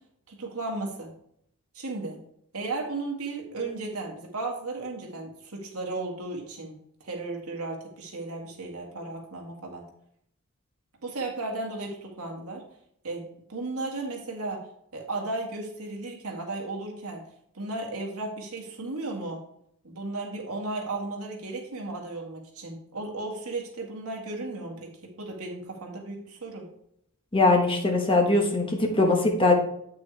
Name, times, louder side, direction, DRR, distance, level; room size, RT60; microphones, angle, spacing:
voice 1, 0.3-1.1 1.7-2.2 2.5-9.8 11.0-12.6 13.0-14.6 14.9-17.2 17.5-19.4 19.8-26.7, right 2 dB, 80° right, 0 dB, 1.9 m, -35 dB
voice 2, 27.3-29.5, left 2 dB, 25° left, 2 dB, 1.2 m, -21 dB
8.6 x 6.1 x 3.3 m, 0.74 s
head